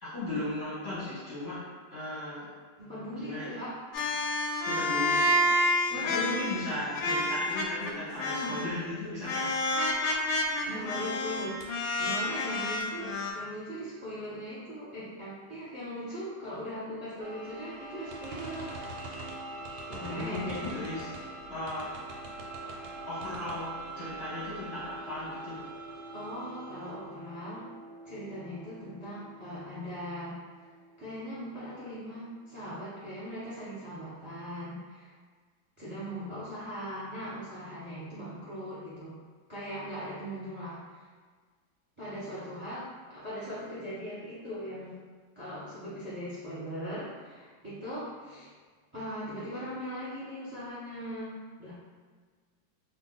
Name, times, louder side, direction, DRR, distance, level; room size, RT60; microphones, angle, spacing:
voice 1, 0.0-2.5 3.2-3.6 4.2-5.4 6.0-9.6 20.0-21.2 21.5-22.0 22.6-22.8 23.1-25.6, left 1 dB, 40° left, -12 dB, 1.1 m, -37 dB
voice 2, 2.8-3.7 5.9-6.4 8.4-8.5 10.0-10.2 10.6-18.7 19.9-20.8 26.1-27.7 28.0-30.4 31.0-35.1 35.8-39.2 39.5-41.0 42.0-45.0 45.3-48.5 48.9-51.7, equal, 20° right, -10 dB, 1.0 m, -39 dB
sound 1, 3.9-7.9 8.2-8.7 9.2-13.3, left 1 dB, 80° left, 1.2 m, -29 dB
sound 2, 17.2-32.8, right 2 dB, 70° right, 1.1 m, -44 dB
sound 3, 18.1-21.3 21.7-23.0 23.2-23.6, right 2 dB, 90° right, 1.4 m, -45 dB
2.7 x 2.7 x 3.8 m, 1.5 s
omnidirectional pair, 2.1 m